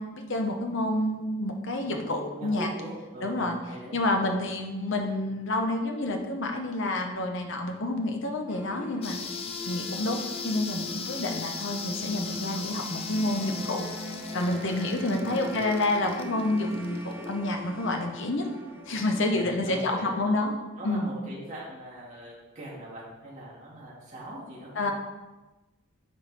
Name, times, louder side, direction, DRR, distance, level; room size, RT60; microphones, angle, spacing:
voice 1, 0.0-2.7 3.2-3.6 3.9-9.2 9.6-13.9 14.3-18.5 18.9-20.6 20.8-21.1 24.8-24.9, left 2 dB, 55° left, 3 dB, 0.9 m, -28 dB
voice 2, 1.8-4.0 14.9-15.5 19.3-20.3 20.8-24.9, right 1 dB, 35° right, -8 dB, 2.1 m, -42 dB
sound 1, 8.5-19.3, left 1 dB, 10° right, 0.7 m, -41 dB
sound 2, 9.0-17.3, left 5 dB, 25° left, 0.4 m, -38 dB
9.5 x 4.6 x 3.4 m, 1.1 s
head